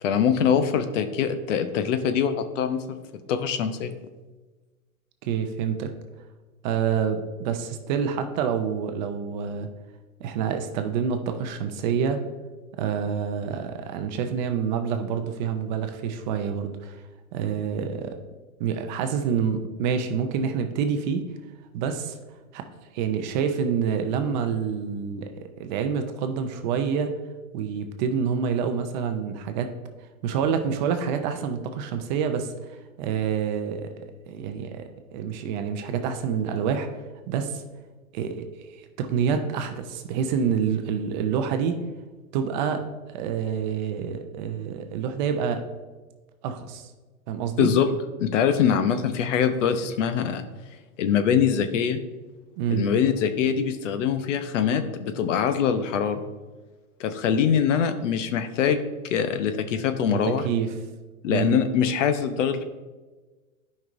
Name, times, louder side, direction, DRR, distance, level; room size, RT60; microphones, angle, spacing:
voice 1, 0.0-3.0 3.3-3.9 47.6-47.9 48.2-50.5 51.0-52.0 52.7-56.2 57.0-60.4 61.2-62.6, left 7 dB, 60° left, 9 dB, 0.8 m, -23 dB
voice 2, 5.2-5.9 6.6-9.7 10.2-12.2 12.8-17.0 17.3-18.2 18.6-21.3 21.7-22.2 22.5-22.7 22.9-27.1 27.5-29.7 30.2-36.9 37.3-37.6 38.1-38.5 38.8-41.8 42.3-42.8 43.1-45.6 46.4-46.9 47.3-47.7 52.6-52.8 60.1-60.7 61.3-61.6, right 7 dB, 35° right, 7 dB, 0.6 m, -27 dB
12.0 x 5.4 x 2.6 m, 1.3 s
hypercardioid pair, 135°, 43 cm